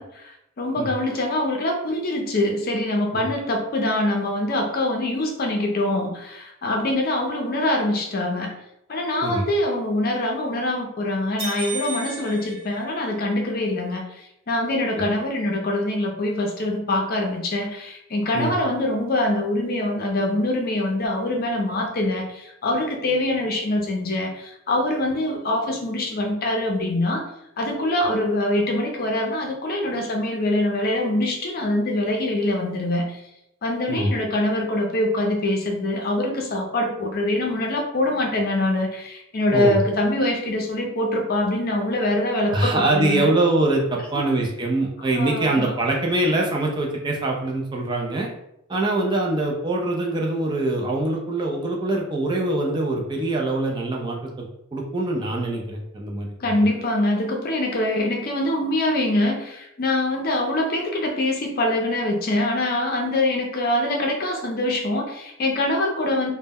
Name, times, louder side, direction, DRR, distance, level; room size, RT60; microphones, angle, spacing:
voice 1, 0.0-8.5 8.9-27.2 27.6-33.2 33.6-43.3 44.1-44.3 45.1-45.8 56.4-66.3, left 1 dB, 45° left, 1 dB, 0.5 m, -24 dB
sound 1, 11.4-13.5, right 5 dB, 55° right, 1.0 m, -34 dB
voice 2, 42.5-48.3 48.7-54.5 54.7-56.5, right 2 dB, 20° right, -1 dB, 0.3 m, -23 dB
2.1 x 2.0 x 3.4 m, 0.82 s
head